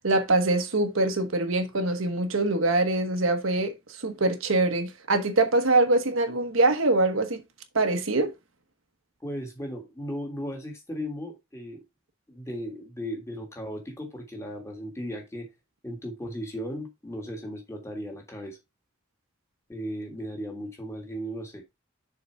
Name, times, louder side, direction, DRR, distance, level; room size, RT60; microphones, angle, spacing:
voice 1, 0.0-7.4 7.7-8.3, right 2 dB, 80° right, 1.2 m, -24 dB
voice 2, 9.2-11.8 12.3-15.5 15.8-18.6 19.7-21.6, equal, 15° left, 1.7 m, -36 dB
6.8 x 4.0 x 4.5 m
head